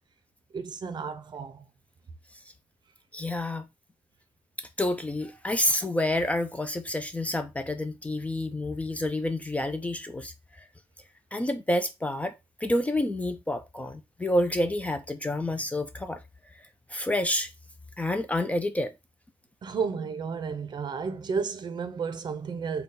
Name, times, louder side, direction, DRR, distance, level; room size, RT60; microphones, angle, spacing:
voice 1, 0.5-1.6 19.6-22.8, right 5 dB, 45° right, 0.6 m, -32 dB
voice 2, 3.1-3.7 4.6-10.3 11.3-12.3 12.6-16.2 16.9-17.5 18.0-18.9, left 1 dB, 15° left, 0.4 m, -28 dB
3.9 x 2.3 x 3.8 m
cardioid pair, 120°, 11 cm